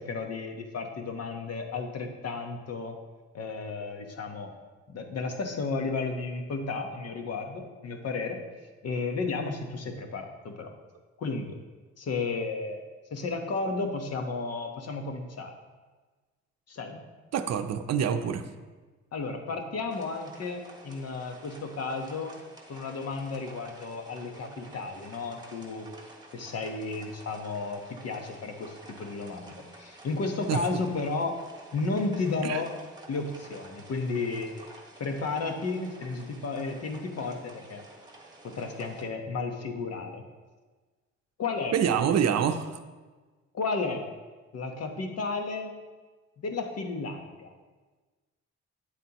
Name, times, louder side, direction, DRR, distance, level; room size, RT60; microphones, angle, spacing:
voice 1, 0.0-3.0 3.3-4.5 4.9-8.4 8.8-10.7 11.2-11.6 12.0-12.8 13.1-15.5 16.7-17.0 19.1-22.4 22.7-25.9 26.3-31.4 31.7-32.7 33.1-34.5 35.0-37.8 38.4-40.2 41.4-41.7 43.5-44.1 44.5-45.7 46.4-47.5, left 3 dB, 55° left, 4 dB, 1.2 m, -33 dB
voice 2, 17.3-18.5 30.5-30.8 32.4-32.6 41.7-42.8, right 8 dB, 60° right, 8 dB, 0.6 m, -26 dB
sound 1, 19.9-39.0, right 2 dB, 15° right, 1.4 m, -50 dB
9.2 x 7.6 x 3.0 m, 1.3 s
cardioid pair, 90°, 30 cm